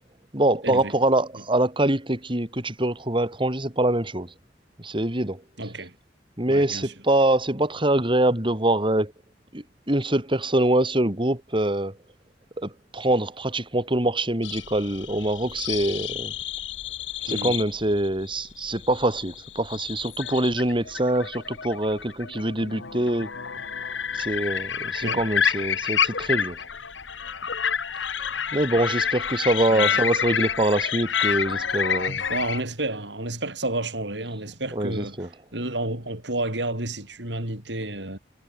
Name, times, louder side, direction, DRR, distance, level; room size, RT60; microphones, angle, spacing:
voice 1, 0.3-4.3 4.8-5.4 6.4-9.1 9.5-12.0 12.6-16.3 17.2-23.3 24.1-26.6 28.5-32.2 34.7-35.3, right 1 dB, 30° right, 4.0 m, -24 dB
voice 2, 5.6-5.9 6.5-6.9 17.3-17.6 25.0-25.2 29.7-30.0 32.3-35.2 35.5-38.2, right 2 dB, 70° right, 6.8 m, -30 dB
sound 1, 14.4-32.6, left 7 dB, 90° left, 1.6 m, -29 dB
head